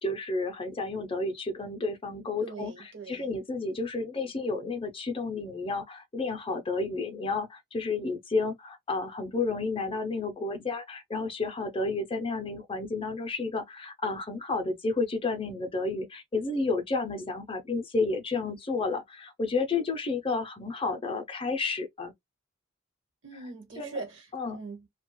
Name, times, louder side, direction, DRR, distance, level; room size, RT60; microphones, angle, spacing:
voice 1, 0.0-22.1 23.8-24.0 24.3-24.6, left 3 dB, 25° left, 0.5 m, -31 dB
voice 2, 2.4-3.3 23.2-24.9, right 3 dB, 60° right, 1.2 m, -41 dB
2.8 x 2.2 x 2.9 m
head